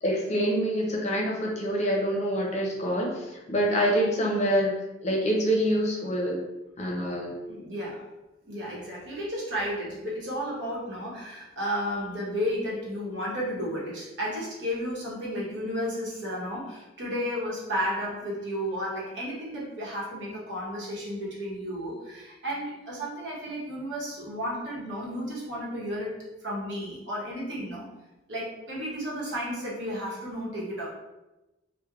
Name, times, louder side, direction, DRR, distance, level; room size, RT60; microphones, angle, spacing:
voice 1, 0.0-4.7 5.0-6.4 6.8-7.3, equal, 40° left, -1 dB, 0.5 m, -26 dB
voice 2, 7.5-8.0 8.5-26.2 26.4-27.9 28.3-30.9, equal, 80° right, -5 dB, 0.9 m, -33 dB
3.2 x 2.0 x 2.3 m, 1.0 s
head